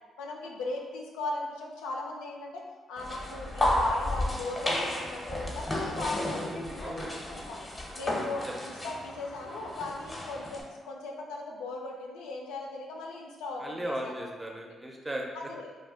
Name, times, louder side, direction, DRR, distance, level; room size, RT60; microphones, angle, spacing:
voice 1, 0.2-2.6 2.9-6.5 6.8-7.7 7.9-14.3 15.3-15.8, left 2 dB, 90° left, 0 dB, 0.3 m, -38 dB
sound 1, 3.0-10.6, left 1 dB, 20° left, 0.7 m, -33 dB
voice 2, 6.3-7.2 8.5-8.6 13.6-15.3, right 1 dB, 15° right, 0 dB, 0.6 m, -37 dB
2.3 x 2.1 x 3.5 m, 1.3 s
supercardioid pair, 55°, 0 cm